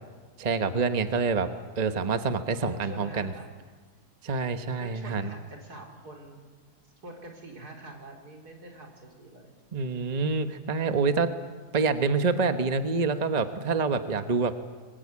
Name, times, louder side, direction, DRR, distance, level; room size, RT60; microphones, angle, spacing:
voice 1, 0.4-1.5 1.8-3.3 4.2-5.3 9.7-11.3 11.7-14.5, right 4 dB, 30° right, 8 dB, 1.1 m, -26 dB
voice 2, 2.6-3.5 4.4-6.4 6.8-9.5, right 1 dB, 85° right, 1 dB, 4.6 m, -46 dB
27.0 x 21.5 x 8.5 m, 1.5 s
omnidirectional pair, 1.6 m